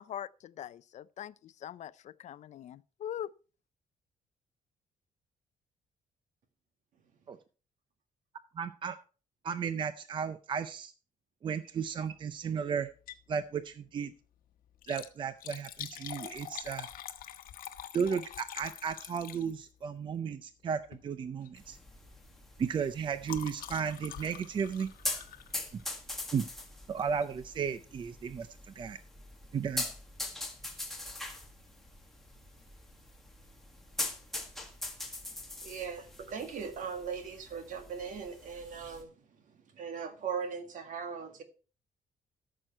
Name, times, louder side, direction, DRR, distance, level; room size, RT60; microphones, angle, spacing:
voice 1, 0.0-3.3, left 10 dB, 55° left, 0.4 m, -42 dB
voice 2, 8.6-9.0 9.4-10.9 11.4-12.9 13.3-14.1 14.9-16.9 17.9-21.8 22.6-24.9 25.7-25.8 26.3-26.4 26.9-28.5 28.8-29.0 29.5-29.9, right 6 dB, 35° right, 0.5 m, -34 dB
Liquid, 12.9-13.3 13.7-13.8 14.7-19.8 20.8-21.1 21.4-21.7 22.0-26.0 27.0-27.2 27.8-27.9 28.1-28.2, left 11 dB, 90° left, 1.0 m, -45 dB
sound 1, 21.6-39.0, left 2 dB, ahead, 1.7 m, -42 dB
voice 3, 35.6-39.1 39.7-41.4, right 6 dB, 65° right, 1.8 m, -39 dB
13.5 x 6.3 x 4.3 m
cardioid pair, 160°, 14 cm